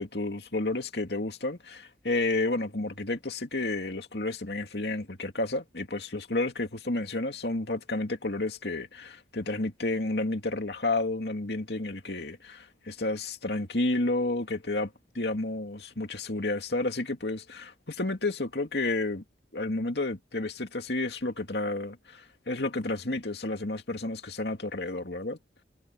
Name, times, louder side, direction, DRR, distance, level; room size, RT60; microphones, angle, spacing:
voice 1, 0.0-19.2 19.5-25.4, left 2 dB, 70° left, 2.5 m, -31 dB
head